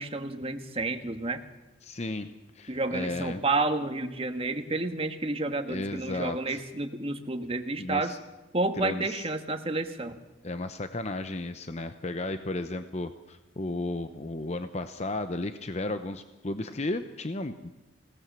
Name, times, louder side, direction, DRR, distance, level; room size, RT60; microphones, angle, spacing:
voice 1, 0.0-1.4 2.7-8.1 8.5-10.2, right 2 dB, 30° right, 7 dB, 1.6 m, -30 dB
voice 2, 1.8-2.3 2.6-3.4 5.7-6.6 7.8-8.2 8.8-9.2 10.4-17.7, left 2 dB, 35° left, 9 dB, 0.8 m, -34 dB
26.0 x 18.0 x 7.5 m, 1.1 s
head